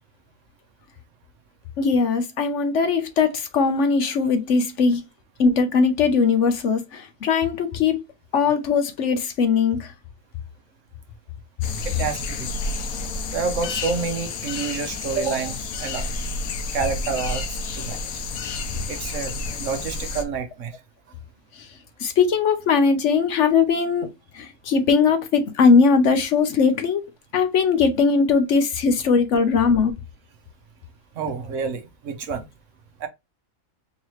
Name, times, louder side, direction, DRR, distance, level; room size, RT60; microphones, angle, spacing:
voice 1, 1.8-5.0 5.4-8.0 8.3-9.9 22.0-24.1 24.3-27.0 27.3-29.9, left 5 dB, 65° left, 0.9 m, -20 dB
sound 1, 11.6-20.2, left 3 dB, 85° left, 1.2 m, -30 dB
voice 2, 11.8-12.5 13.3-16.1 16.7-18.1 18.9-20.7 31.2-32.4 33.0-33.1, right 5 dB, 65° right, 1.0 m, -28 dB
3.9 x 2.9 x 3.0 m
omnidirectional pair, 1.5 m